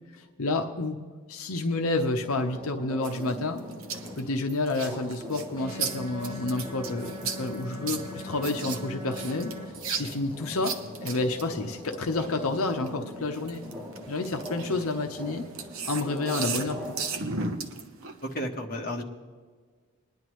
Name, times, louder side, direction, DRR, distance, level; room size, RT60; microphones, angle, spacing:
voice 1, 0.2-1.0 1.3-3.6 4.2-9.5 9.9-10.7 11.0-13.6 14.1-15.4 15.9-16.9, left 2 dB, 75° left, 5 dB, 0.8 m, -29 dB
sound 1, 2.2-17.2, equal, ahead, 3.5 m, -42 dB
sound 2, 3.0-12.9 13.3-18.3, right 5 dB, 70° right, 0.9 m, -36 dB
sound 3, 5.5-9.6, left 2 dB, 20° left, 1.8 m, -42 dB
voice 2, 18.2-19.0, equal, 40° left, 1 dB, 1.2 m, -32 dB
20.5 x 10.5 x 3.1 m, 1.5 s
head